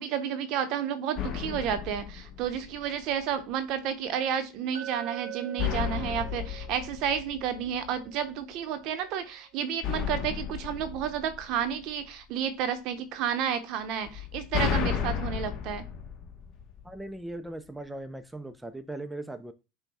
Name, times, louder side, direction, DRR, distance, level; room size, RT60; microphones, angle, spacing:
voice 1, 0.0-15.8, right 8 dB, 60° right, 10 dB, 0.8 m, -31 dB
sound 1, 1.1-3.0 5.6-8.0 9.8-12.1 14.0-17.1, left 8 dB, 45° left, 1.2 m, -33 dB
Glass, 4.8-8.9, right 12 dB, 90° right, 0.9 m, -43 dB
voice 2, 16.8-19.5, right 1 dB, 5° right, 9 dB, 0.5 m, -39 dB
5.7 x 2.3 x 4.1 m, 0.29 s
hypercardioid pair, 100°, 0 cm